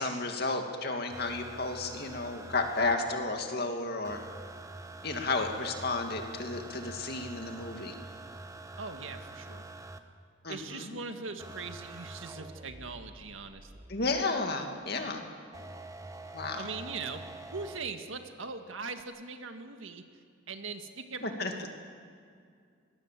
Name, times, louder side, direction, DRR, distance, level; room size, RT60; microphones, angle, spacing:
voice 1, 0.0-4.2 5.0-7.9 10.4-10.9 13.9-15.2 16.3-16.6 21.2-21.7, left 3 dB, 50° left, 4 dB, 2.4 m, -32 dB
sound 1, 1.1-3.0 4.0-10.0 11.4-14.4 15.5-17.8 19.0-19.1, right 2 dB, 15° right, 1.0 m, -46 dB
voice 2, 8.8-9.6 10.5-13.7 16.6-17.2 17.5-20.0 20.5-21.7, right 4 dB, 80° right, 6 dB, 1.8 m, -40 dB
24.5 x 20.5 x 7.6 m, 2.3 s
head